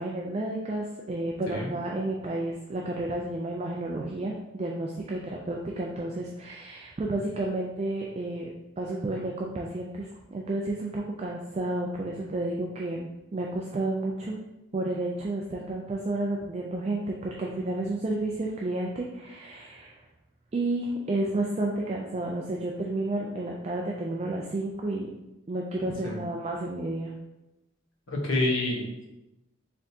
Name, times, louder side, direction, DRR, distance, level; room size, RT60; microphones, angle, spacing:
voice 1, 0.0-8.5 8.8-14.3 14.7-20.0 20.5-25.1 25.5-27.1, right 2 dB, 30° right, -1 dB, 0.3 m, -31 dB
voice 2, 28.1-29.0, left 2 dB, 70° left, -2 dB, 1.1 m, -28 dB
4.3 x 3.6 x 2.7 m, 0.97 s
head